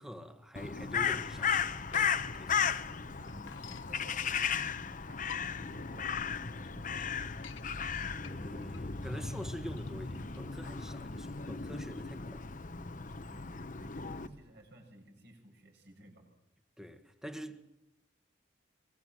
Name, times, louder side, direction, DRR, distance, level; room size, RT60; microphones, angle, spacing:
voice 1, 0.0-1.6 1.9-2.1 2.3-2.7 8.1-12.5 16.8-17.7, equal, 5° right, 1.5 m, -45 dB
Crow, 0.5-14.3, left 6 dB, 45° left, 1.0 m, -35 dB
sound 1, 1.4-2.4 2.8-2.9 3.0-3.9 4.7-4.8 5.1-5.8 6.3-6.4 6.6-6.7 7.1-7.6 8.2-11.1, left 8 dB, 85° left, 1.1 m, -51 dB
voice 2, 2.6-7.3 13.3-16.3, right 1 dB, 60° right, 7.6 m, -55 dB
24.0 x 22.0 x 7.7 m
head